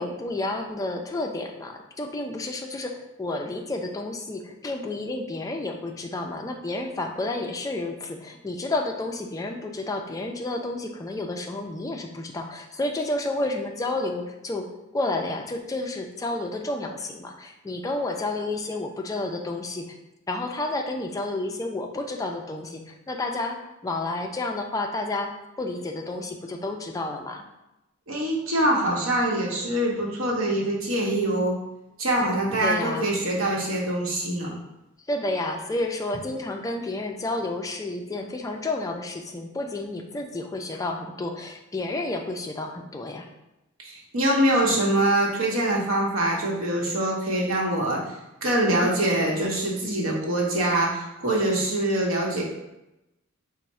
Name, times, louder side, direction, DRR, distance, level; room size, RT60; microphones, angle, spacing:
voice 1, 0.0-20.0 20.3-27.4 32.6-33.1 35.1-43.3 48.8-49.4, left 2 dB, 15° left, 3 dB, 0.3 m, -31 dB
voice 2, 28.1-31.6 32.0-34.5 43.8-48.0 48.4-52.4, right 1 dB, 75° right, -2 dB, 0.9 m, -24 dB
3.5 x 2.0 x 4.1 m, 0.94 s
head